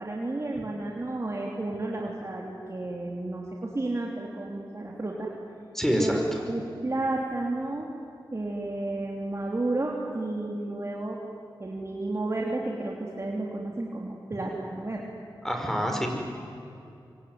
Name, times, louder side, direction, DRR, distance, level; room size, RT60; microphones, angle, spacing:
voice 1, 0.0-5.3 5.9-6.2 6.5-7.9 8.3-11.2 11.6-15.1, right 2 dB, 35° right, -2 dB, 3.3 m, -32 dB
voice 2, 5.7-6.2 15.4-16.1, equal, 5° left, 2 dB, 5.2 m, -26 dB
25.5 x 24.0 x 9.7 m, 2.6 s
wide cardioid pair, 75°, 8 cm